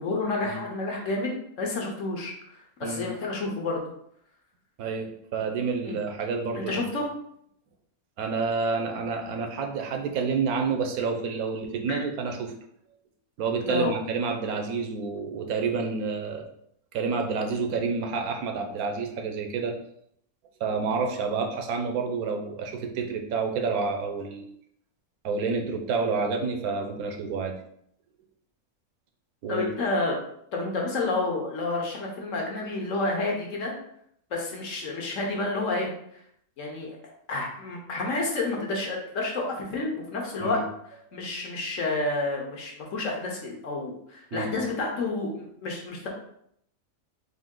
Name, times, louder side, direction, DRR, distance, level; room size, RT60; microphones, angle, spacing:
voice 1, 0.0-2.3 2.8-3.8 5.8-5.9 6.5-7.1 11.9-12.0 13.6-13.9 29.5-30.2 30.5-33.7 34.3-35.9 36.6-37.0 37.3-40.6 41.1-46.1, left 2 dB, 60° left, 0 dB, 1.2 m, -29 dB
voice 2, 4.8-6.8 8.2-12.5 13.4-16.4 16.9-19.8 20.6-24.5 25.2-27.5 29.4-29.7 40.4-40.6 44.3-44.6, right 4 dB, 85° right, 4 dB, 1.1 m, -29 dB
4.0 x 2.7 x 3.6 m, 0.70 s
omnidirectional pair, 1.5 m